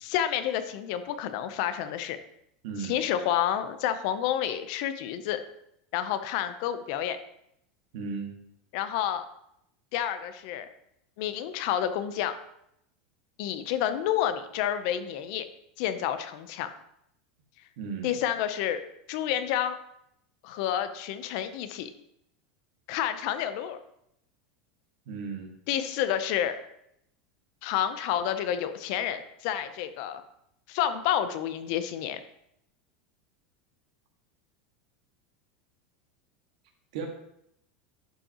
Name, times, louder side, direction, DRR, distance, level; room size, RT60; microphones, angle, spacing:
voice 1, 0.0-2.2 2.8-5.4 5.9-7.2 8.7-9.2 9.9-10.7 11.2-12.4 13.4-15.5 15.8-16.7 18.0-18.8 19.1-19.8 20.4-21.9 22.9-23.8 25.7-26.6 27.6-30.2 30.7-32.2, left 10 dB, 55° left, 11 dB, 0.6 m, -29 dB
voice 2, 2.6-3.0 7.9-8.3 17.8-18.2 25.1-25.5 36.9-37.1, right 5 dB, 70° right, 3 dB, 1.7 m, -35 dB
11.5 x 5.3 x 2.9 m, 0.76 s
supercardioid pair, 155°, 4 cm